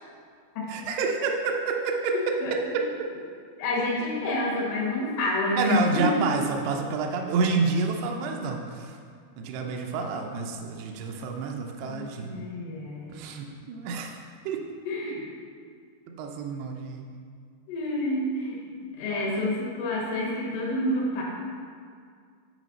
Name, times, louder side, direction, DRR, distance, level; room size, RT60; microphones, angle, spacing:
voice 1, 0.7-2.9 5.6-9.0 9.4-12.4 13.1-14.2 14.5-14.6 15.1-15.2 16.2-17.1 19.1-19.5, right 4 dB, 80° right, 2 dB, 2.4 m, -29 dB
voice 2, 3.6-5.8 11.9-13.2 14.8-15.2 17.7-18.6 19.0-21.2, left 1 dB, 75° left, -4 dB, 3.4 m, -28 dB
9.2 x 5.0 x 4.1 m, 2.1 s
omnidirectional pair, 5.1 m